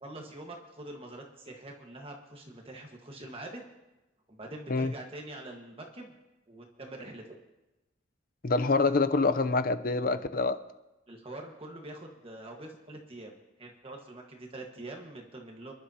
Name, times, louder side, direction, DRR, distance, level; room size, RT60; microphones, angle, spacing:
voice 1, 0.0-3.7 4.3-6.1 6.5-7.4 11.1-15.7, right 1 dB, 30° right, 1 dB, 1.5 m, -44 dB
voice 2, 8.4-10.6, left 3 dB, 50° left, 10 dB, 0.6 m, -26 dB
28.0 x 11.5 x 2.9 m, 1.0 s
head